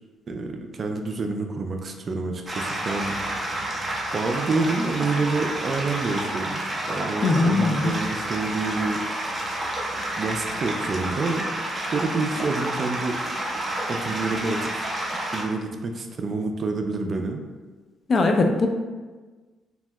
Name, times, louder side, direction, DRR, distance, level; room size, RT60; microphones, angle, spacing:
voice 1, 0.3-3.1 4.1-6.6 6.9-9.0 10.2-11.5 11.9-13.2 13.9-14.9 15.3-17.4, right 3 dB, 45° right, 4 dB, 0.3 m, -28 dB
sound 1, 2.5-15.4, right 1 dB, 20° right, 0.7 m, -30 dB
voice 2, 7.2-7.9 18.1-18.7, left 3 dB, 45° left, 4 dB, 0.3 m, -20 dB
2.7 x 2.1 x 3.3 m, 1.3 s
cardioid pair, 90°, 0 cm